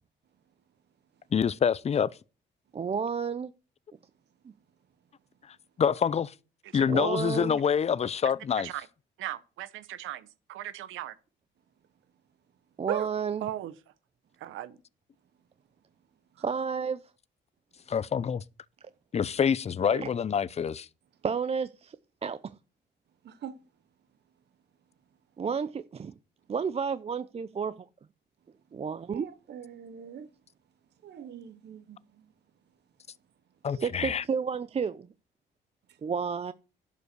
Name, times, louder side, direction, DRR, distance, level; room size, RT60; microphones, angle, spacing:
voice 1, 1.3-2.1 5.8-6.3 6.7-8.7 17.9-18.4 19.1-20.9 33.6-34.2, left 7 dB, 35° left, 0.5 m, -26 dB
voice 2, 2.7-3.5 6.9-7.6 12.8-13.5 16.4-17.0 19.9-20.1 21.2-22.0 22.2-22.5 25.4-26.1 26.5-27.7 28.7-29.3 33.7-35.1 36.0-36.5, right 6 dB, 30° right, 0.5 m, -31 dB
voice 3, 9.2-11.2 12.9-13.1 13.4-13.7 14.4-14.8, right 12 dB, 85° right, 0.9 m, -37 dB
voice 4, 23.2-23.6 29.1-30.3 31.0-32.3 33.7-33.9, right 8 dB, 60° right, 0.9 m, -44 dB
11.0 x 5.3 x 6.6 m
cardioid pair, 90°, 20 cm